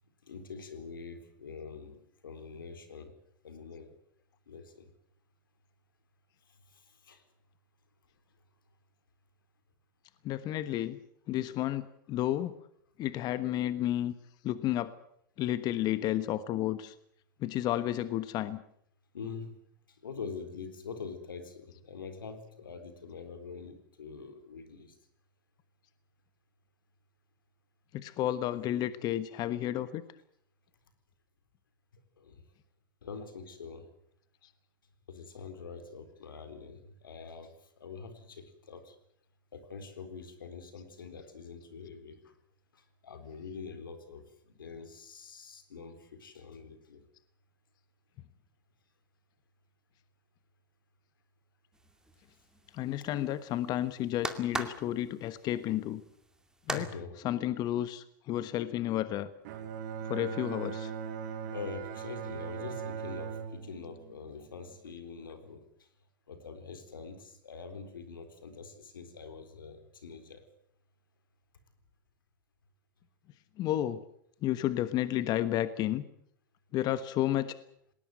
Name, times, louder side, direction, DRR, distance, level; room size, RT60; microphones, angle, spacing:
voice 1, 0.2-3.1 3.4-3.9 4.5-4.9 6.5-7.2 19.1-19.5 19.9-24.9 32.2-32.4 33.0-33.9 35.1-39.0 39.5-42.3 42.7-47.0 56.7-57.2 61.5-65.9 66.3-70.5, left 5 dB, 90° left, 9 dB, 4.0 m, -45 dB
voice 2, 10.2-11.0 11.3-12.5 13.0-14.1 14.4-14.9 15.4-16.9 17.4-18.6 27.9-30.0 52.7-56.0 56.7-59.3 60.0-60.9 73.6-74.0 74.4-76.0 76.7-77.5, left 13 dB, 40° left, 13 dB, 1.3 m, -31 dB
sound 1, 51.7-56.9, right 2 dB, 5° right, 2.3 m, -41 dB
Bowed string instrument, 59.4-64.9, right 7 dB, 60° right, 4.5 m, -40 dB
20.0 x 19.0 x 9.2 m, 0.69 s
hypercardioid pair, 115°, 11 cm